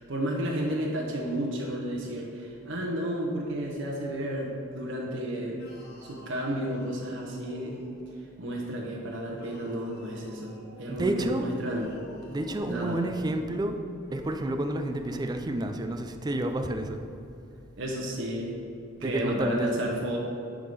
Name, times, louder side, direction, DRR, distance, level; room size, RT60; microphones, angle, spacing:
voice 1, 0.0-5.6 6.0-7.8 8.4-11.9 12.7-13.0 17.8-18.6 19.0-20.2, right 1 dB, 65° right, -2 dB, 1.0 m, -32 dB
sound 1, 5.5-8.2 9.3-10.8 11.6-13.1 14.0-15.5, equal, 55° left, 1.4 m, -50 dB
voice 2, 10.9-11.4 12.3-13.8 14.1-17.0 19.0-19.7, right 1 dB, 20° right, 6 dB, 0.4 m, -30 dB
10.0 x 3.7 x 5.0 m, 2.7 s
head